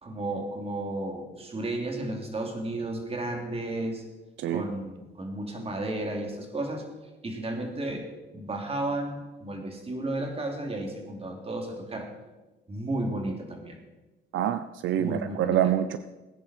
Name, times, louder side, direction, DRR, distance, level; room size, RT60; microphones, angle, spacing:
voice 1, 0.0-4.0 4.5-6.8 7.2-12.1 12.7-13.8 15.0-15.7, right 1 dB, 30° right, 2 dB, 3.1 m, -33 dB
voice 2, 14.3-16.0, right 11 dB, 75° right, 11 dB, 0.6 m, -26 dB
19.0 x 9.9 x 4.5 m, 1.1 s
cardioid pair, 90°, 20 cm